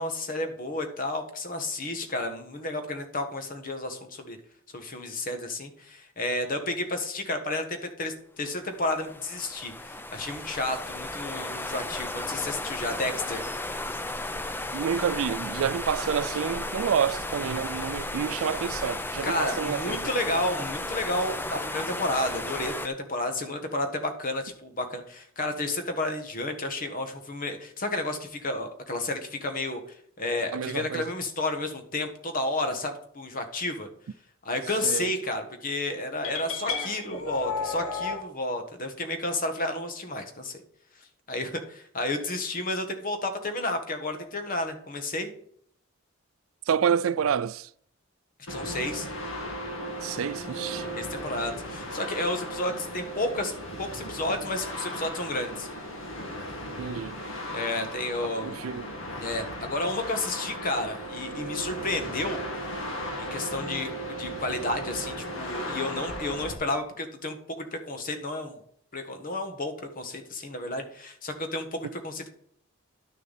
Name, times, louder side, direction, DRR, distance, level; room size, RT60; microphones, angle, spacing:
voice 1, 0.0-4.4 4.7-13.4 19.2-33.9 34.4-40.6 41.3-45.3 48.5-49.1 50.9-53.5 53.8-55.7 57.5-58.6 59.2-62.4 63.2-63.9 64.2-68.6 68.9-72.3, left 2 dB, 40° left, 1.4 m, -31 dB
sound 1, 8.6-22.9, left 2 dB, 10° left, 0.5 m, -34 dB
voice 2, 14.7-20.2 30.5-31.1 34.8-35.1 46.7-47.7 50.0-50.9 56.8-57.2 58.4-58.8, right 7 dB, 70° right, 0.4 m, -28 dB
sound 2, 36.2-38.2, left 4 dB, 80° left, 1.6 m, -32 dB
sound 3, 48.5-66.5, equal, 65° left, 1.9 m, -36 dB
11.0 x 6.7 x 4.1 m
head